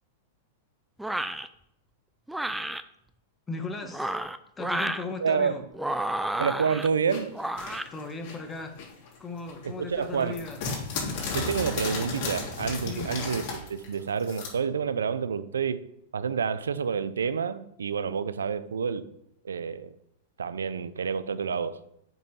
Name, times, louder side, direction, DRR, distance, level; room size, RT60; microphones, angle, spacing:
sound 1, 1.0-1.5 2.3-2.8 3.8-5.0 5.7-6.9 7.3-7.9, right 1 dB, 5° right, 0.5 m, -31 dB
voice 1, 3.5-4.2 4.6-5.6 7.9-8.8 9.2-10.6 10.9-11.2 12.8-13.2, left 3 dB, 15° left, 5 dB, 1.4 m, -37 dB
voice 2, 5.2-5.6 6.4-7.4 9.6-10.4 11.3-15.8 16.1-19.1 19.4-19.9 20.4-21.8, right 6 dB, 90° right, 14 dB, 0.5 m, -28 dB
sound 2, 7.1-9.2 9.5-14.5, left 4 dB, 55° left, 3.6 m, -34 dB
7.5 x 5.5 x 5.5 m, 0.77 s
hypercardioid pair, 115°, 0 cm